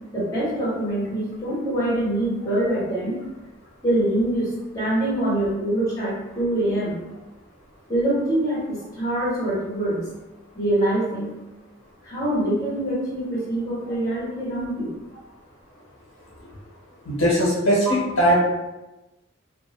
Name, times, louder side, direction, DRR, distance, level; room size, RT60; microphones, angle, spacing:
voice 1, 0.1-3.2 3.8-7.0 7.9-10.0 10.5-11.3 12.0-14.9, right 1 dB, 15° left, -9 dB, 1.2 m, -24 dB
voice 2, 17.0-18.4, equal, 80° left, -6 dB, 1.0 m, -20 dB
2.6 x 2.0 x 3.2 m, 1.0 s
head